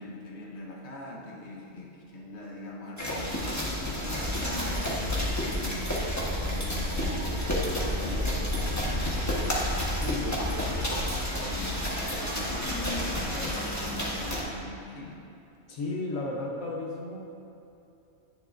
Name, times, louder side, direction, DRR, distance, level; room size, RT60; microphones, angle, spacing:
voice 1, 0.0-9.3 9.7-15.3, left 2 dB, 60° left, -2 dB, 1.5 m, -41 dB
sound 1, 3.0-14.4, equal, 15° left, 1.3 m, -30 dB
voice 2, 15.7-17.3, left 2 dB, 85° left, -2 dB, 1.4 m, -33 dB
10.5 x 9.9 x 2.6 m, 2.8 s
omnidirectional pair, 1.3 m